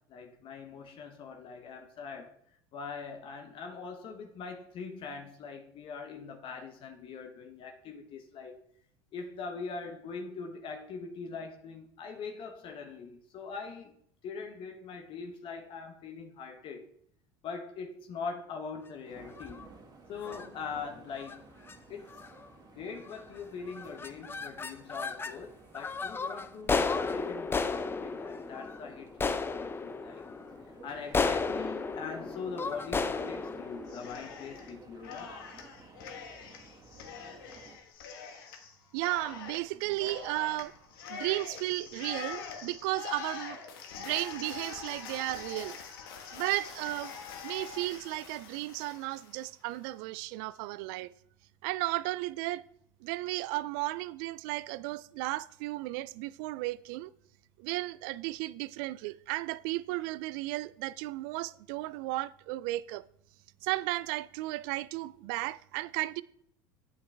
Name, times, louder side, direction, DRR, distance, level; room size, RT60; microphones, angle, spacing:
voice 1, 0.0-2.3 2.7-8.6 9.1-14.0 14.2-16.9 17.4-19.7 20.1-21.4 21.9-22.2 22.7-30.2 30.7-35.3, left 5 dB, 50° left, 1.0 m, -42 dB
sound 1, 19.0-37.8, right 4 dB, 35° right, 1.8 m, -55 dB
sound 2, 19.3-19.7 20.2-20.5 21.2-21.4 21.7-21.8 22.1-22.5 23.0-23.4 23.7-25.4 25.7-34.9, left 4 dB, 20° left, 0.6 m, -34 dB
Cheering, 33.9-34.7 35.0-49.5, left 6 dB, 85° left, 1.4 m, -44 dB
voice 2, 38.9-40.7 41.1-43.6 44.0-45.8 46.3-47.1 47.4-51.1 51.6-52.6 53.0-57.1 57.6-63.1 63.6-66.2, right 18 dB, 70° right, 0.4 m, -34 dB
8.7 x 7.2 x 3.4 m
supercardioid pair, 90°, 12 cm